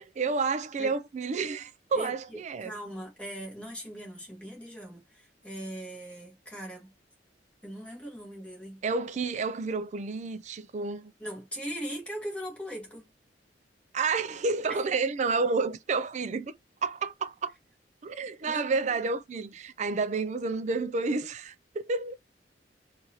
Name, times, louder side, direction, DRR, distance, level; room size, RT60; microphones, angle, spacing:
voice 1, 0.0-2.8 8.8-11.1 13.9-16.5 16.8-17.5 18.0-22.1, right 4 dB, 40° right, 0.4 m, -30 dB
voice 2, 1.9-6.9 7.6-8.8 11.2-13.1 14.7-14.8 18.4-18.8, equal, 5° left, 1.4 m, -40 dB
4.0 x 2.5 x 2.8 m
head